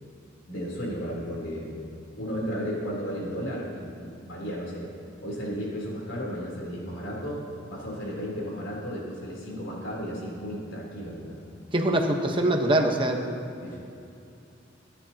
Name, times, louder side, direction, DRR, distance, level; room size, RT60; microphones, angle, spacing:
voice 1, 0.5-1.8 2.2-4.9 5.2-11.4 13.6-13.8, equal, 85° left, -3 dB, 3.5 m, -34 dB
voice 2, 11.7-13.3, right 1 dB, 25° right, 3 dB, 1.1 m, -23 dB
22.5 x 10.5 x 2.9 m, 2.7 s
head